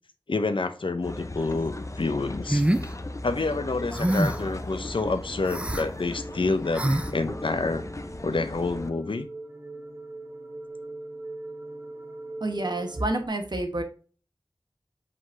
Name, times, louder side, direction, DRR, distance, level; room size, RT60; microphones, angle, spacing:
voice 1, 0.3-2.7 3.2-7.8 8.2-9.3, left 3 dB, 80° left, 9 dB, 0.6 m, -28 dB
sound 1, 1.0-8.9, left 2 dB, 35° left, 0.5 m, -37 dB
sound 2, 2.5-2.9 3.9-4.5 5.4-5.8 6.7-7.1, right 1 dB, 15° right, 0.5 m, -24 dB
sound 3, 4.7-13.3, right 2 dB, 30° right, 1.4 m, -42 dB
voice 2, 12.4-13.8, right 2 dB, 55° right, 5 dB, 1.1 m, -28 dB
5.1 x 3.9 x 2.6 m, 0.39 s
wide cardioid pair, 55°, 9 cm